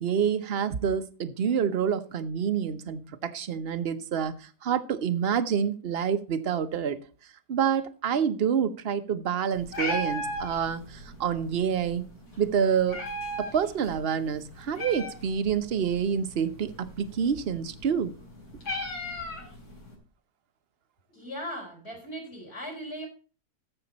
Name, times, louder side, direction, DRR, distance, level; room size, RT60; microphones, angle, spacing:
voice 1, 0.0-7.0 7.5-12.0 12.4-13.0 13.4-18.1, right 7 dB, 45° right, 10 dB, 0.9 m, -27 dB
Meow, 9.5-19.9, left 1 dB, 65° left, 5.0 m, -38 dB
voice 2, 21.1-23.1, equal, 35° left, 2 dB, 4.7 m, -38 dB
14.0 x 6.9 x 4.2 m, 0.36 s
omnidirectional pair, 1.9 m